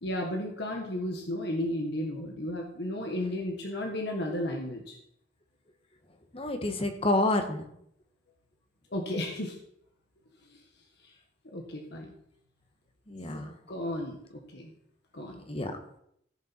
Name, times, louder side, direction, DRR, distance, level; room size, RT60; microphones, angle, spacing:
voice 1, 0.0-5.0 8.9-9.5 11.5-12.1 13.7-14.7 15.1-15.4, left 1 dB, 65° left, 1 dB, 1.8 m, -33 dB
voice 2, 6.3-7.6 13.1-13.6 15.5-15.7, left 2 dB, 30° left, 6 dB, 1.5 m, -28 dB
15.5 x 7.0 x 4.5 m, 0.72 s
head